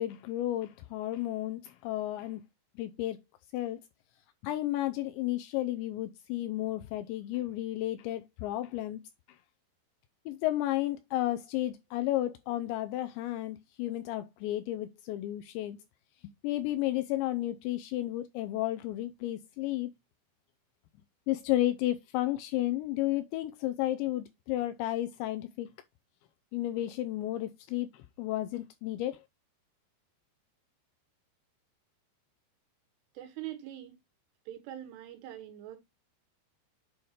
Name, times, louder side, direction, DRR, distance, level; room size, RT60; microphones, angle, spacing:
voice 1, 0.0-2.4 2.8-3.2 3.5-3.8 4.4-9.0 9.3-9.4 10.3-15.8 16.2-19.9 21.3-25.7 26.5-29.2, left 15 dB, 85° left, 2.6 m, -32 dB
voice 2, 33.2-34.0 34.5-35.8, right 13 dB, 80° right, 3.9 m, -43 dB
8.4 x 3.2 x 5.5 m
omnidirectional pair, 5.6 m